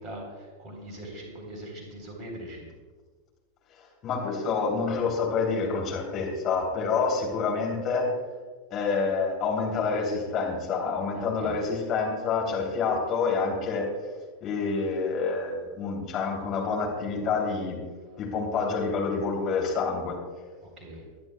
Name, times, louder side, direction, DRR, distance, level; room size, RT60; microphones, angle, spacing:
voice 1, 0.0-2.7 11.2-11.6 20.8-21.0, right 1 dB, 30° right, 1 dB, 3.9 m, -41 dB
voice 2, 4.0-8.1 8.7-13.9 14.4-17.8 18.2-20.1, left 4 dB, 30° left, 0 dB, 3.3 m, -27 dB
23.5 x 10.5 x 2.4 m, 1.5 s
figure-of-eight pair, 90°, 0 cm